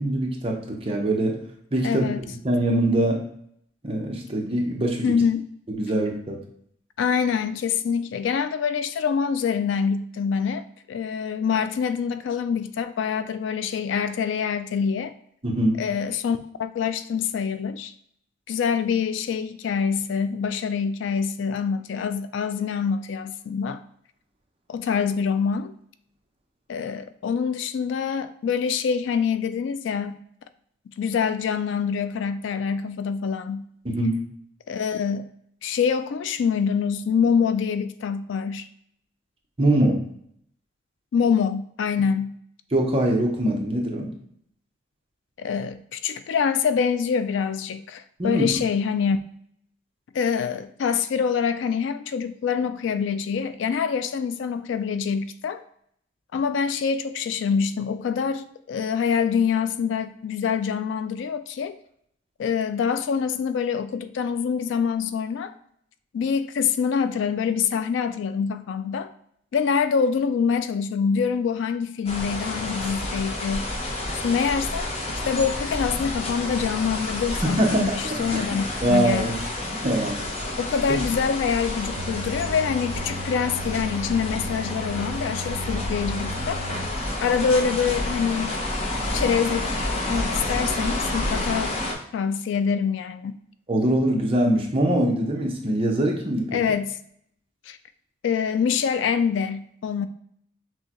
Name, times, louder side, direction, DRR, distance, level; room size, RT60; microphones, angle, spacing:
voice 1, 0.0-1.4 1.7-2.1 2.4-3.2 3.8-5.0 5.7-6.4 15.4-15.8 33.8-34.2 39.6-40.0 42.7-44.1 48.2-48.5 77.4-78.4 78.8-79.3 79.8-80.3 93.7-96.6, right 1 dB, 30° right, 0 dB, 0.7 m, -23 dB
voice 2, 1.8-2.2 5.0-5.4 7.0-15.1 15.8-17.9 18.5-23.8 24.7-25.7 26.7-30.2 31.0-33.7 34.7-35.3 35.6-38.7 41.1-42.3 45.4-49.2 50.1-55.6 56.3-61.8 62.4-65.5 66.1-69.1 69.5-73.7 74.2-74.9 75.2-79.3 80.6-86.6 87.2-88.5 89.1-91.7 92.1-93.3 96.5-97.0 97.7-97.8 98.2-100.1, left 6 dB, 70° left, 12 dB, 0.3 m, -25 dB
sound 1, 72.1-91.9, left 1 dB, 30° left, 0.7 m, -30 dB
sound 2, 82.0-86.9, equal, 75° right, 0.4 m, -36 dB
6.2 x 2.2 x 2.9 m, 0.68 s
head